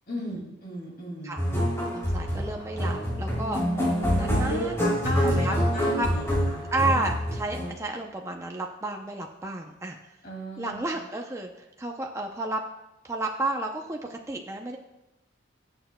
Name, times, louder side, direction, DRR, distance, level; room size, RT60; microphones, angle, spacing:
voice 1, 0.1-1.4 4.1-6.6 10.2-10.8, equal, 45° left, -1 dB, 2.4 m, -35 dB
sound 1, 1.4-7.7, equal, 15° left, 3.0 m, -26 dB
voice 2, 1.9-3.6 4.1-4.9 5.2-5.5 5.9-6.1 6.7-10.0 10.6-12.6 13.0-14.8, right 2 dB, 15° right, 2 dB, 0.5 m, -31 dB
19.5 x 8.0 x 2.2 m, 0.93 s
head